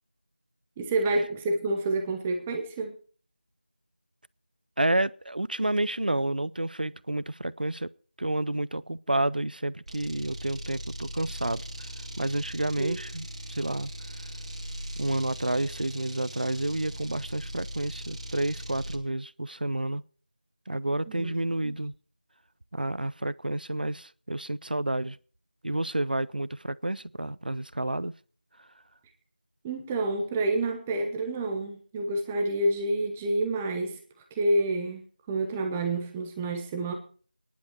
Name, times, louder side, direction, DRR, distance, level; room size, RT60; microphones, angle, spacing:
voice 1, 0.8-3.0 12.8-13.0 21.1-21.4 21.6-21.7 29.6-34.0 34.3-36.9, right 2 dB, 5° right, 0.7 m, -28 dB
voice 2, 4.8-7.9 8.2-11.9 12.2-14.2 15.0-20.0 20.7-21.9 22.7-25.2 25.6-28.1, right 1 dB, 75° right, 0.7 m, -30 dB
sound 1, 9.9-19.1, right 1 dB, 40° right, 2.2 m, -39 dB
21.5 x 10.5 x 4.5 m
figure-of-eight pair, 170°, 5 cm